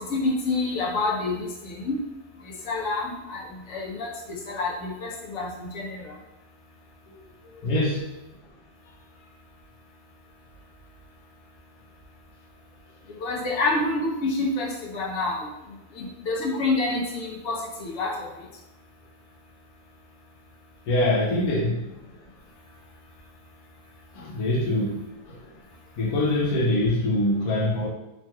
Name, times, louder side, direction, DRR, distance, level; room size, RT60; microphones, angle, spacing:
voice 1, 0.0-2.0 2.6-6.1 13.2-15.5 15.9-18.3, left 2 dB, 60° left, 0.9 m, -28 dB
voice 2, 7.4-8.1 20.9-21.8 24.1-25.0 25.3-25.4 26.0-27.9, left 1 dB, 80° left, 1.2 m, -24 dB
3.1 x 2.9 x 2.2 m
omnidirectional pair, 1.6 m